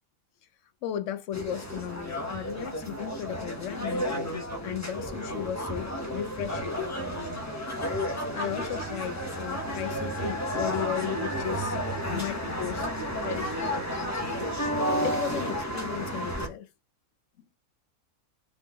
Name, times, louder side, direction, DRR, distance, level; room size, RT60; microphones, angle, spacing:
voice 1, 0.8-4.1 4.6-6.8 8.1-11.8 12.1-12.9 13.2-14.5 14.8-16.7, left 10 dB, 65° left, 0.9 m, -36 dB
sound 1, 1.3-16.5, equal, 15° left, 0.8 m, -32 dB
3.8 x 3.8 x 3.5 m
omnidirectional pair, 1.6 m